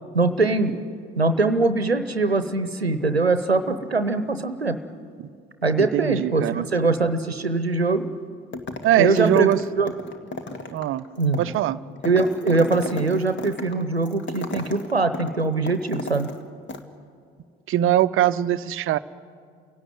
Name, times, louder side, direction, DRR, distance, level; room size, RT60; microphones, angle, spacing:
voice 1, 0.1-0.7 1.1-4.8 5.6-8.1 8.9-9.5 9.8-9.9 11.2-11.4 12.0-16.3, right 3 dB, 90° right, 11 dB, 0.9 m, -22 dB
voice 2, 5.8-6.7 8.8-9.6 10.7-11.0 11.4-11.8 17.7-19.0, right 12 dB, 45° right, 14 dB, 0.7 m, -21 dB
sound 1, 8.5-8.9 9.2-16.4 16.7-16.8, left 3 dB, 40° left, 2.1 m, -35 dB
29.5 x 17.5 x 9.3 m, 2.2 s
figure-of-eight pair, 55°, 30 cm